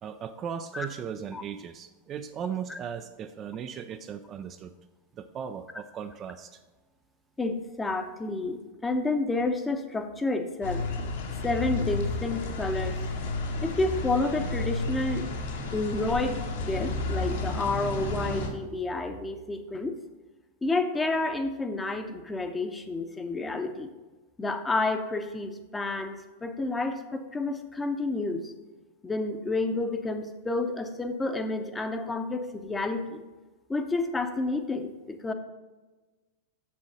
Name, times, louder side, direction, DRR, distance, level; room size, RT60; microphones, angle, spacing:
voice 1, 0.0-4.7 5.2-6.6, right 8 dB, 30° right, 9 dB, 0.4 m, -37 dB
voice 2, 7.4-10.8 11.4-13.0 13.6-15.3 15.7-19.9 20.6-23.9 24.4-28.5 29.0-33.2 33.7-35.3, left 2 dB, 10° left, 7 dB, 0.8 m, -30 dB
sound 1, 10.6-18.5, left 2 dB, 55° left, 1.3 m, -32 dB
7.2 x 6.3 x 5.3 m, 1.2 s
figure-of-eight pair, 90°, 0 cm